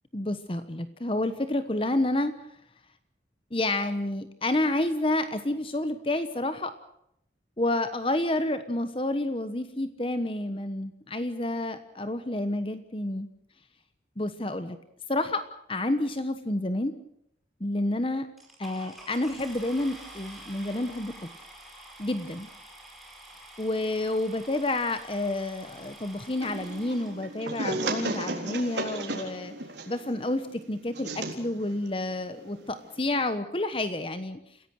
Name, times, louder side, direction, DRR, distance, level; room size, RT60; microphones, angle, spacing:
voice 1, 0.1-2.3 3.5-6.7 7.6-13.3 14.2-14.8 15.1-16.9 17.6-18.3 18.6-21.1 22.0-22.5 23.6-29.5 29.9-34.4, left 1 dB, 30° left, 11 dB, 1.1 m, -29 dB
sound 1, 18.4-28.3 29.1-29.2 29.7-29.8 30.0-30.3, right 1 dB, ahead, 4.9 m, -48 dB
sound 2, 26.4-33.1, right 2 dB, 80° right, 3.9 m, -35 dB
30.0 x 16.5 x 6.5 m, 0.76 s
head